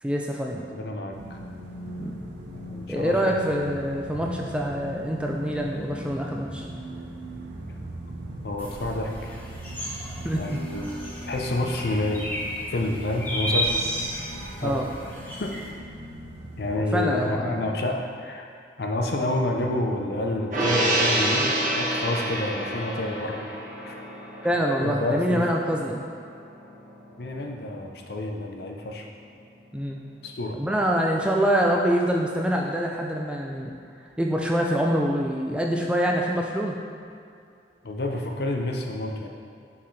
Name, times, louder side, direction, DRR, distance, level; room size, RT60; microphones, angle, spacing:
voice 1, 0.0-0.6 2.0-2.2 2.9-6.7 10.2-10.4 14.6-14.9 16.9-17.6 24.4-26.0 29.7-30.0 30.5-33.7 34.2-36.8, equal, 5° right, -1 dB, 0.4 m, -25 dB
voice 2, 0.7-1.4 2.5-3.3 8.4-9.4 10.3-10.9 11.3-12.3 12.7-13.8 14.1-14.3 14.6-14.9 15.4-15.6 16.6-18.5 18.8-23.5 23.8-24.0 24.8-25.5 27.2-29.1 30.2-30.6 37.8-39.3, left 2 dB, 60° left, 1 dB, 0.6 m, -29 dB
sound 1, 1.1-16.8, equal, 80° right, 0.7 m, -39 dB
sound 2, 8.6-15.7, equal, 10° left, 0.9 m, -33 dB
Gong, 20.5-27.1 27.5-27.6, right 1 dB, 45° right, 1.2 m, -28 dB
6.8 x 4.7 x 3.2 m, 2.4 s
head